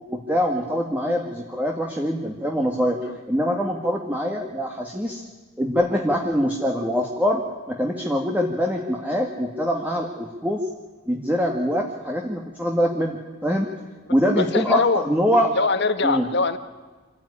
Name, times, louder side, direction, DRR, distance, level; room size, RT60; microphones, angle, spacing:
voice 1, 0.1-3.0 3.3-5.2 5.6-10.6 11.1-13.7 14.1-15.5 16.0-16.3, equal, 10° right, 1 dB, 1.9 m, -24 dB
voice 2, 14.4-15.0 15.5-16.6, left 4 dB, 55° left, 10 dB, 1.5 m, -22 dB
26.5 x 15.0 x 9.9 m, 1.4 s
head